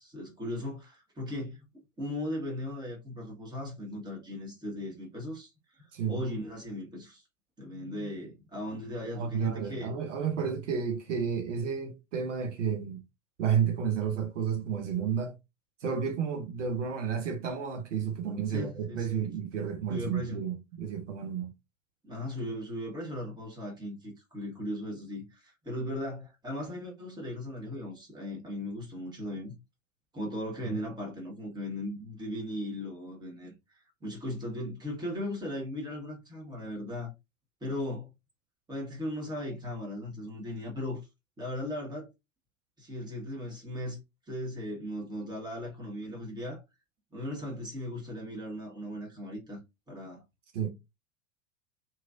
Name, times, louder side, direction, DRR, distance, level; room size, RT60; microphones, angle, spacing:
voice 1, 0.0-1.6 2.0-7.2 7.6-9.9 18.5-19.2 19.9-20.4 22.0-29.6 30.1-37.1 37.6-38.1 38.7-41.0 41.4-42.1 42.8-44.0 44.3-46.6 47.1-49.6 49.9-50.2, left 1 dB, 10° right, 1.4 m, -37 dB
voice 2, 5.9-6.2 9.2-13.0 13.4-15.3 15.8-21.5 30.6-30.8 50.5-50.7, right 7 dB, 65° right, 0.7 m, -31 dB
2.9 x 2.7 x 2.5 m
figure-of-eight pair, 85°, 39 cm